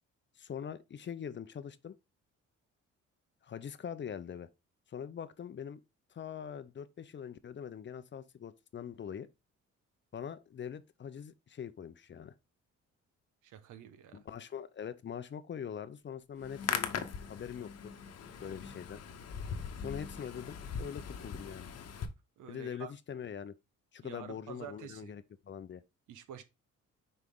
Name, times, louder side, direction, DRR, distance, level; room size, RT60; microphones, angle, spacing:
voice 1, 0.4-1.9 3.4-4.5 4.9-5.8 6.1-9.3 10.1-12.3 14.1-17.0 17.3-17.9 18.4-19.0 19.8-21.7 22.5-23.5 23.9-25.8, left 8 dB, 40° left, 0.6 m, -43 dB
voice 2, 13.4-14.3 22.4-22.9 24.0-25.1 26.1-26.4, right 9 dB, 80° right, 1.0 m, -48 dB
Hands, 16.4-22.1, left 7 dB, 55° left, 1.0 m, -40 dB
6.3 x 4.5 x 3.6 m
cardioid pair, 90°, 30 cm